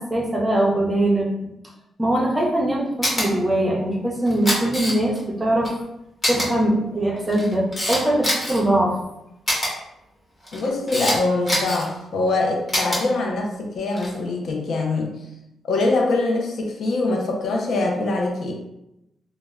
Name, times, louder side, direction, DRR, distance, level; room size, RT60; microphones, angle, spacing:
voice 1, 0.0-1.5 2.0-5.7 6.3-9.0, right 1 dB, 15° right, -2 dB, 0.6 m, -21 dB
Camera, 3.0-3.3 4.3-5.2 5.6-5.7 6.2-6.5 7.2-8.6 9.5-9.7 10.4-11.2 11.5-11.9 12.7-13.0 13.9-14.2, equal, 15° left, 1.0 m, -23 dB
voice 2, 10.5-15.1 15.7-18.5, left 2 dB, 70° left, 1 dB, 0.5 m, -23 dB
2.0 x 2.0 x 3.4 m, 0.86 s
cardioid pair, 105°, 0 cm